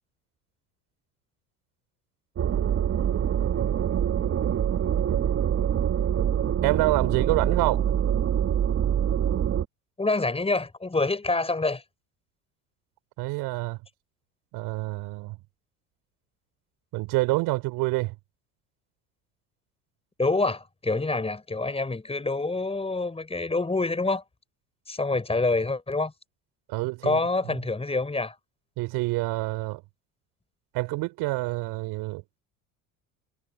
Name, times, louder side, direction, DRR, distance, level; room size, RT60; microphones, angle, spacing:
sound 1, 2.4-9.6, right 9 dB, 35° right, 1.0 m, -25 dB
voice 1, 6.6-7.8 13.2-13.8 14.5-15.4 16.9-18.2 26.7-27.2 27.5-27.6 28.8-29.8 30.7-32.2, right 21 dB, 65° right, 4.4 m, -27 dB
voice 2, 10.0-11.8 20.2-24.2 24.9-26.1 27.0-28.4, left 3 dB, 15° left, 5.5 m, -26 dB
hypercardioid pair, 80°, 41 cm